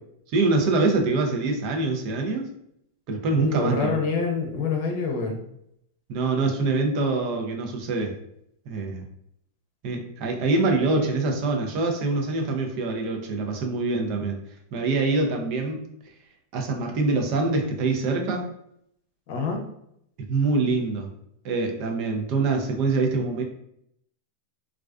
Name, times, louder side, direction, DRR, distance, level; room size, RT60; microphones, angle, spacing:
voice 1, 0.3-2.5 3.1-4.0 6.1-8.1 8.7-9.0 9.8-14.4 14.7-15.9 16.5-18.5 20.3-21.1 21.4-23.4, right 3 dB, 50° right, 3 dB, 0.6 m, -24 dB
voice 2, 3.3-5.4 19.3-19.6, left 4 dB, 60° left, 2 dB, 0.6 m, -26 dB
2.4 x 2.2 x 2.3 m, 0.74 s
hypercardioid pair, 120°, 0 cm